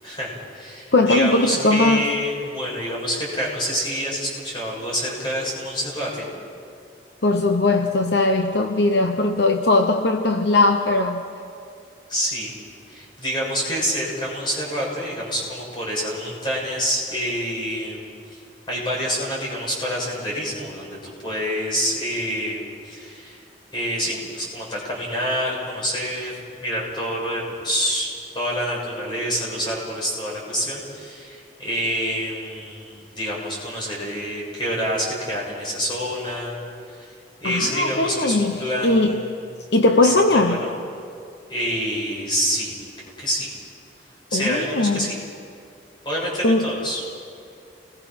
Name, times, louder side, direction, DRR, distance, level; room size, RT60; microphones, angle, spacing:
voice 1, 0.0-6.3 12.1-12.5 12.9-18.4 18.7-23.4 23.7-28.1 28.3-36.6 36.9-37.1 37.4-39.3 40.0-40.7 41.5-42.7 43.2-43.5 44.3-45.2 46.0-47.0, equal, 25° left, -4 dB, 6.8 m, -27 dB
voice 2, 0.9-2.1 7.2-11.2 37.4-39.2 39.7-40.6 44.3-45.1 46.4-46.7, left 2 dB, 65° left, 5 dB, 1.0 m, -19 dB
29.5 x 21.0 x 6.1 m, 2.4 s
head